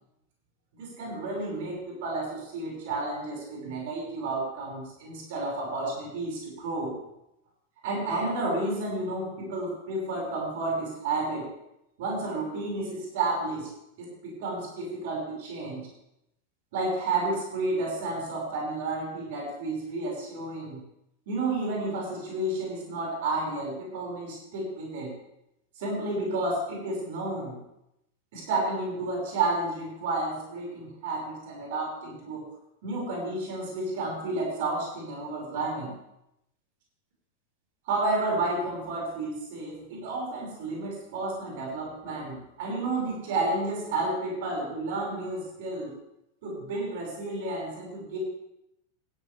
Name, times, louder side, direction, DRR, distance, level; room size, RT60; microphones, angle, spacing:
voice 1, 0.8-7.0 7.8-11.5 12.0-13.7 14.0-15.9 16.7-20.8 21.3-25.1 25.8-27.6 28.3-32.5 32.8-35.9 37.9-45.9 46.4-48.2, right 2 dB, 50° right, -1 dB, 5.7 m, -31 dB
16.0 x 13.0 x 3.5 m, 0.84 s
figure-of-eight pair, 90°, 0 cm